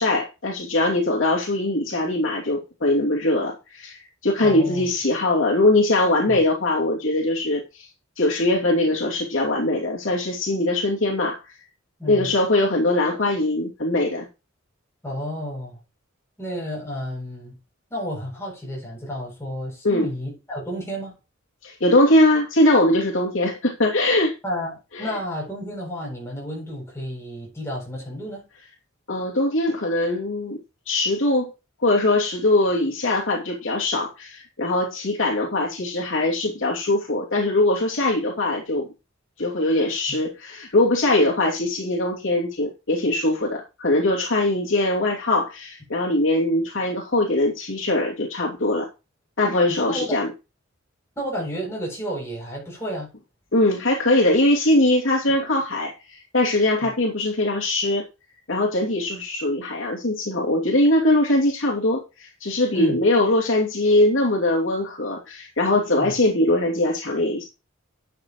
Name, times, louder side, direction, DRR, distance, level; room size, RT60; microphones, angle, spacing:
voice 1, 0.0-4.0 4.2-7.9 8.2-11.4 12.1-14.3 19.8-20.1 21.6-24.3 24.9-25.1 29.1-30.6 30.9-31.5 31.8-38.9 39.4-48.9 49.4-50.3 53.5-58.0 58.5-67.4, left 1 dB, 70° left, 2.7 m, -21 dB
voice 2, 4.4-4.9 6.3-6.4 12.0-12.3 15.0-15.8 16.4-17.6 17.9-21.1 24.4-28.5 40.1-40.2 49.7-50.2 51.2-53.1 56.8-56.9 62.7-63.0 66.0-66.2, equal, 15° left, 7.3 m, -31 dB
12.0 x 8.2 x 3.1 m
head